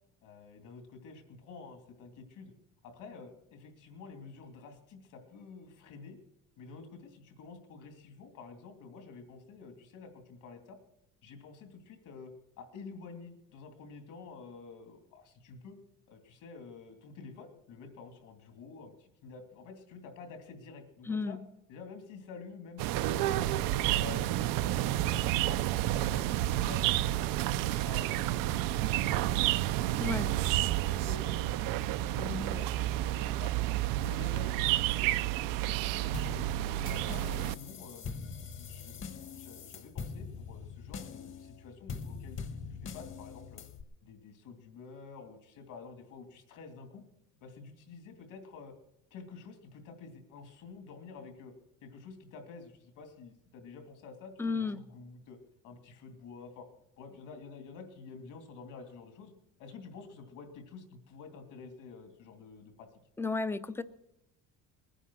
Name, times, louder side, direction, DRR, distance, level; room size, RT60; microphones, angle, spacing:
voice 1, 0.2-2.5 2.8-6.2 6.6-10.8 11.2-12.3 12.6-15.8 16.1-21.4 21.7-23.4 23.7-25.6 25.9-27.2 27.4-29.7 30.0-31.6 32.0-33.5 34.0-36.4 36.8-43.6 44.0-47.0 47.4-48.7 49.1-51.5 51.8-55.4 55.6-56.7 57.0-59.3 59.6-62.9, left 4 dB, 65° left, 6 dB, 3.0 m, -49 dB
voice 2, 21.1-21.4 30.0-30.3 54.4-54.8 63.2-63.8, left 4 dB, 5° left, 13 dB, 0.5 m, -32 dB
sound 1, 22.8-37.5, right 14 dB, 75° right, 0.6 m, -30 dB
sound 2, 36.1-43.8, left 5 dB, 35° left, 1.3 m, -43 dB
20.5 x 10.0 x 6.3 m, 0.83 s
cardioid pair, 135°, 33 cm